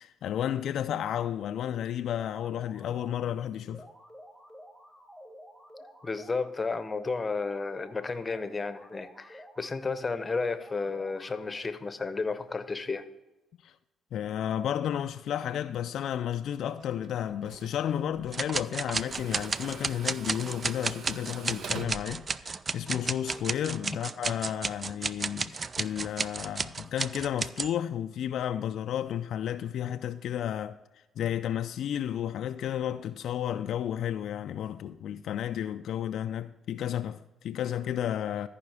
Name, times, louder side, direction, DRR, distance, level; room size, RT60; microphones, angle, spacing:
voice 1, 0.0-3.9 13.6-13.7 14.1-30.8 31.2-38.5, left 10 dB, 70° left, 0.3 m, -32 dB
sound 1, 2.1-3.3 3.7-6.5 6.9-9.7 10.1-11.7, equal, 10° right, 1.8 m, -51 dB
voice 2, 6.0-13.0, left 4 dB, 30° left, 0.8 m, -32 dB
Tools, 16.8-23.1, right 5 dB, 65° right, 0.8 m, -46 dB
sound 2, 18.3-27.7, right 4 dB, 35° right, 0.3 m, -32 dB
13.5 x 5.0 x 4.8 m
cardioid pair, 80°, 0 cm